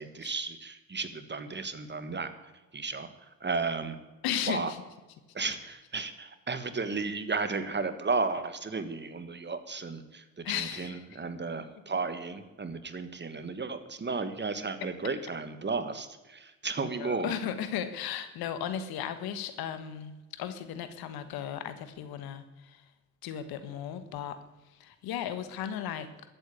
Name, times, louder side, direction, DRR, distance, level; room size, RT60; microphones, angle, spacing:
voice 1, 0.0-2.3 2.7-4.0 4.5-4.7 5.3-17.3, right 4 dB, 30° right, 10 dB, 1.7 m, -34 dB
voice 2, 4.2-4.8 10.4-11.0 17.0-22.9 23.2-26.1, left 9 dB, 80° left, 11 dB, 1.4 m, -36 dB
13.5 x 8.9 x 8.7 m, 1.1 s
supercardioid pair, 65°, 36 cm